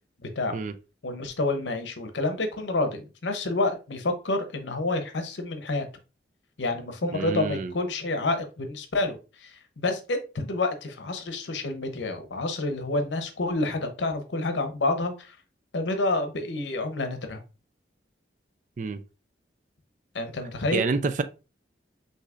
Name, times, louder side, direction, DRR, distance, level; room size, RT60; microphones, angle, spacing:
voice 1, 0.2-0.6 1.0-5.9 6.6-15.3 15.7-17.4 20.1-20.8, left 2 dB, 85° left, 0.8 m, -28 dB
voice 2, 7.0-7.7 18.8-19.0 20.7-21.2, right 4 dB, 45° right, 0.3 m, -28 dB
6.2 x 2.8 x 2.4 m
head